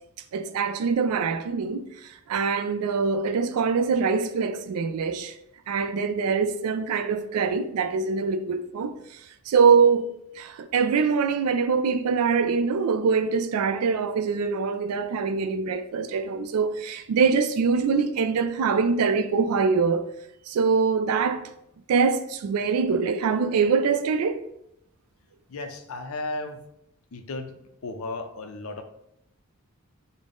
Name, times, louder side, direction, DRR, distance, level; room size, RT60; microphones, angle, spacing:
voice 1, 0.3-5.3 5.7-8.9 9.5-10.1 10.4-20.0 20.5-21.4 21.9-24.4, right 5 dB, 90° right, 0.3 m, -23 dB
voice 2, 25.5-26.6 27.1-28.8, left 2 dB, 70° left, 0.5 m, -35 dB
3.7 x 2.0 x 3.5 m
head